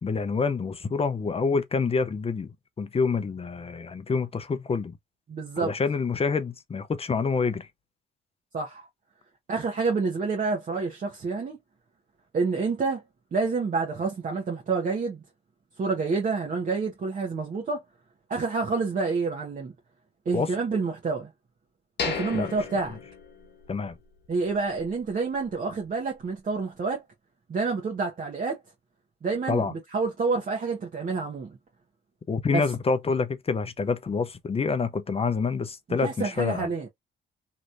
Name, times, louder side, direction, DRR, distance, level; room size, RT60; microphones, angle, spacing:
voice 1, 0.0-4.9 5.6-7.7 20.3-20.5 22.3-22.5 23.7-23.9 29.5-29.7 32.3-36.7, left 4 dB, 30° left, 0.6 m, -27 dB
voice 2, 5.3-5.7 8.5-8.8 9.5-11.6 12.3-13.0 13.3-15.2 15.8-17.8 18.3-19.7 20.2-21.3 22.1-22.9 24.3-27.0 27.5-28.6 29.2-31.6 32.5-32.6 36.0-36.9, right 4 dB, 45° right, 1.2 m, -28 dB
sound 1, 22.0-23.9 24.2-24.3 24.9-25.0, left 6 dB, 60° left, 1.1 m, -34 dB
3.1 x 2.9 x 2.6 m
cardioid pair, 90°, 20 cm